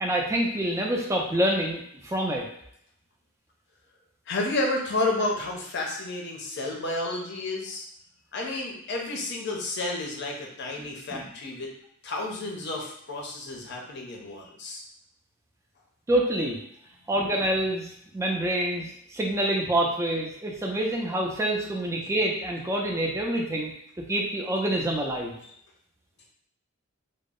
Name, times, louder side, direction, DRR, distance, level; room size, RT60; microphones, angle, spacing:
voice 1, 0.0-2.4 11.1-11.2 16.1-16.6 17.1-25.4, right 1 dB, 15° right, 0 dB, 0.3 m, -27 dB
voice 2, 4.3-7.9 8.3-11.7 12.0-14.8, left 2 dB, 55° left, -1 dB, 0.5 m, -31 dB
2.0 x 2.0 x 3.5 m, 0.71 s
head